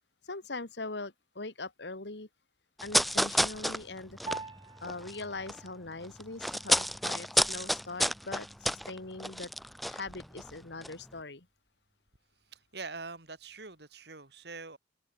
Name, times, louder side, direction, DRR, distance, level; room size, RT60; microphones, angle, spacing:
voice 1, 0.2-2.3 2.8-4.2 4.8-9.5 9.8-11.5, left 3 dB, 75° left, 2.1 m, -41 dB
sound 1, 2.8-5.7 5.9-10.5 10.8-10.9, equal, ahead, 0.3 m, -30 dB
Piano, 4.3-13.9, right 3 dB, 25° right, 4.0 m, -50 dB
voice 2, 12.5-14.8, right 4 dB, 65° right, 3.4 m, -44 dB
head